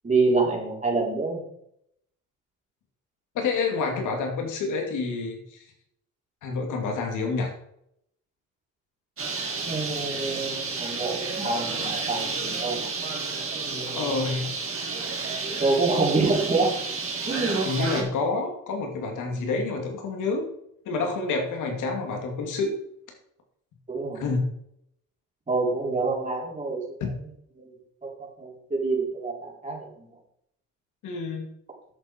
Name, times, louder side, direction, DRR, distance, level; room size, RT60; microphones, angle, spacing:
voice 1, 0.0-1.4 9.6-12.9 13.7-14.1 15.6-16.7 17.3-17.7 18.0-18.1 23.9-24.2 25.5-26.8 27.6-27.7 28.0-28.1 28.4-30.1, right 3 dB, 25° right, -2 dB, 3.9 m, -26 dB
voice 2, 3.3-5.6 6.4-7.5 13.9-14.5 17.6-20.5 20.9-22.7 24.1-24.4 27.0-27.1 31.0-31.5, left 4 dB, 85° left, 3 dB, 2.6 m, -28 dB
Bird, 9.2-18.0, right 4 dB, 45° right, 3.3 m, -31 dB
11.0 x 7.1 x 4.5 m, 0.74 s
cardioid pair, 90°, 30 cm